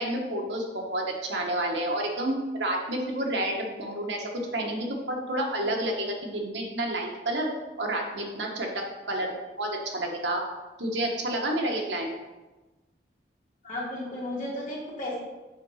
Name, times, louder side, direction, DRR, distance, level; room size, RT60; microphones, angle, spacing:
voice 1, 0.0-7.5 7.8-8.7 9.1-9.3 9.6-10.4 10.8-12.1, right 1 dB, 85° right, 1 dB, 1.5 m, -29 dB
voice 2, 13.6-15.2, left 1 dB, 45° left, -5 dB, 2.6 m, -34 dB
7.1 x 4.8 x 5.8 m, 1.1 s
head